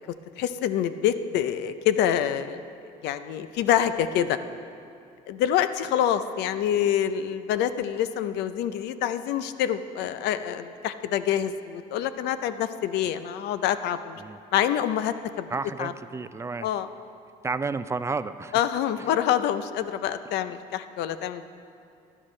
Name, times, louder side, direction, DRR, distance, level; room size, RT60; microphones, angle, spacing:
voice 1, 0.4-2.6 3.0-4.4 5.3-14.2 14.5-15.5 15.8-15.9 16.6-16.9 18.5-21.4, left 10 dB, 85° left, 12 dB, 0.5 m, -26 dB
voice 2, 15.5-16.7 17.4-18.6 19.0-19.1, right 4 dB, 15° right, 13 dB, 0.3 m, -31 dB
16.0 x 11.0 x 3.2 m, 2.5 s
cardioid pair, 110°, 17 cm